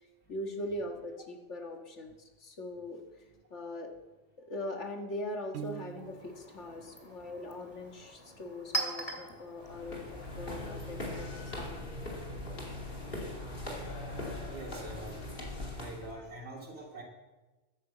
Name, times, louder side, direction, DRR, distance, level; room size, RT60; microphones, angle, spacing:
voice 1, 0.3-2.1 2.4-3.0 3.5-3.9 4.4-11.8, left 1 dB, 80° left, 3 dB, 1.9 m, -41 dB
Piano, 5.5-6.5, right 12 dB, 85° right, 1.0 m, -43 dB
Chink clink, 5.8-11.3, right 2 dB, 30° left, 1.9 m, -42 dB
sound 1, 9.6-16.1, left 1 dB, 50° left, 2.8 m, -40 dB
voice 2, 14.4-15.2 15.7-17.0, right 2 dB, 65° right, -1 dB, 3.0 m, -44 dB
11.5 x 9.9 x 7.3 m, 1.2 s
omnidirectional pair, 1.2 m